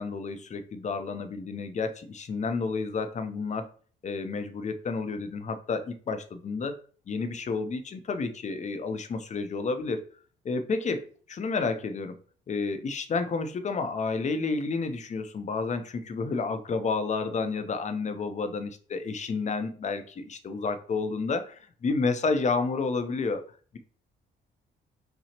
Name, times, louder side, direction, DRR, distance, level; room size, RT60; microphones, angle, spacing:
voice 1, 0.0-3.7 4.0-6.8 7.1-10.1 10.4-12.2 12.5-23.4, left 4 dB, 35° left, 0.6 m, -30 dB
5.8 x 2.0 x 2.9 m
cardioid pair, 90°, 20 cm